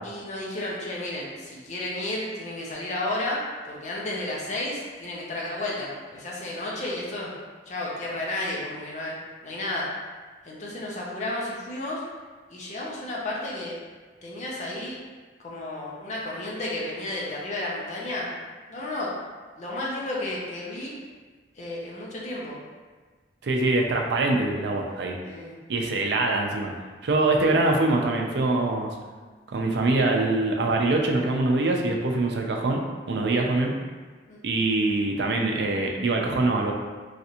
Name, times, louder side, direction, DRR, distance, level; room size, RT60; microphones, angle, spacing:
voice 1, 0.0-7.3 7.7-9.2 9.4-9.9 10.4-12.0 12.5-13.7 14.2-15.0 15.4-18.3 18.7-19.1 19.6-20.9 21.6-22.6 25.2-25.5 34.3-34.4, left 1 dB, 40° left, -4 dB, 0.6 m, -32 dB
voice 2, 23.4-25.2 25.7-26.7 27.0-28.9 29.5-32.8 33.1-33.7 34.4-36.7, right 2 dB, 70° right, 2 dB, 0.4 m, -24 dB
3.2 x 2.5 x 2.8 m, 1.4 s
head